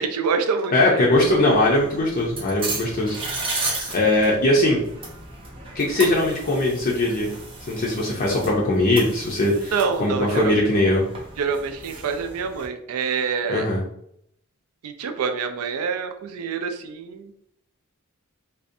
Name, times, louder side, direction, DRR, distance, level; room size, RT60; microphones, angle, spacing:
voice 1, 0.0-1.0 9.5-10.6 11.4-13.7 14.8-17.3, right 5 dB, 80° right, 7 dB, 0.4 m, -26 dB
voice 2, 0.7-3.2 3.4-4.8 5.8-7.3 7.7-11.1 13.5-13.8, left 1 dB, 40° left, -2 dB, 0.5 m, -20 dB
sound 1, 1.1-12.7, right 2 dB, 25° right, 0.5 m, -35 dB
2.5 x 2.1 x 2.5 m, 0.72 s
head